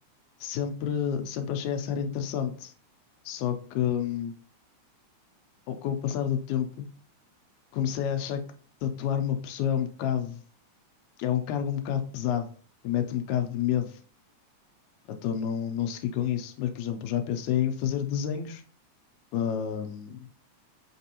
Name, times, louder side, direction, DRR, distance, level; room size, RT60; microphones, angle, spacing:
voice 1, 0.4-2.7 3.3-4.3 5.7-6.9 7.7-8.4 8.8-10.4 11.2-12.5 12.8-14.0 15.2-18.6 19.3-20.3, left 9 dB, 80° left, 7 dB, 2.0 m, -29 dB
5.2 x 3.4 x 2.8 m, 0.42 s
omnidirectional pair, 3.5 m